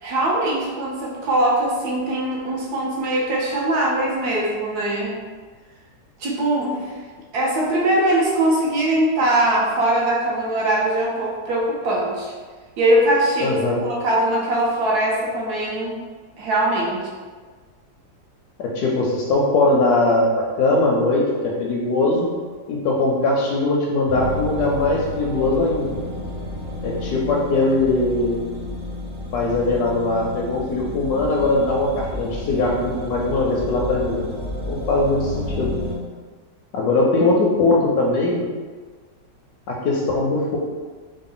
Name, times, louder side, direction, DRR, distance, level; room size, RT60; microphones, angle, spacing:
voice 1, 0.0-5.2 6.2-7.0 7.3-12.3 12.8-16.0 16.4-17.0, right 1 dB, 70° right, -3 dB, 1.1 m, -21 dB
voice 2, 13.4-13.8 18.6-22.3 22.7-25.9 26.8-28.4 29.3-34.2 34.6-35.7 36.7-38.4 39.7-40.6, left 2 dB, 70° left, -2 dB, 0.9 m, -20 dB
sound 1, 24.1-36.0, left 1 dB, 50° right, 0.8 m, -31 dB
3.8 x 2.0 x 3.7 m, 1.5 s
omnidirectional pair, 2.0 m